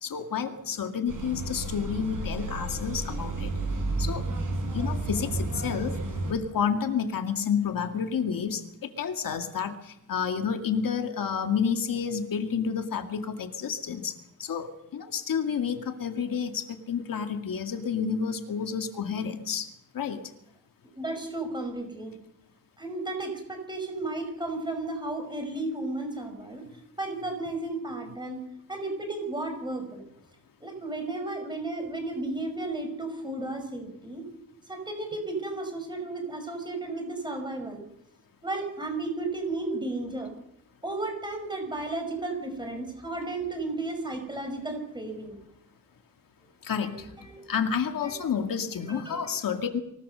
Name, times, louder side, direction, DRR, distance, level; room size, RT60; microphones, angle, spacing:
voice 1, 0.0-3.5 4.0-4.3 4.7-5.9 6.3-8.6 9.0-9.7 10.1-14.1 14.4-14.7 14.9-19.7 19.9-20.2 46.7-46.9 47.5-49.8, left 7 dB, 85° left, 6 dB, 2.1 m, -29 dB
sound 1, 1.1-6.3, right 2 dB, 75° right, 6.0 m, -31 dB
voice 2, 21.0-22.1 22.8-26.6 27.0-28.4 28.7-30.0 30.6-34.2 34.7-37.8 38.4-40.3 40.8-45.4 46.8-47.0 47.2-48.2 48.7-49.2, right 2 dB, 15° right, 4 dB, 5.4 m, -34 dB
24.5 x 17.5 x 6.8 m, 0.81 s
wide cardioid pair, 165°, 33 cm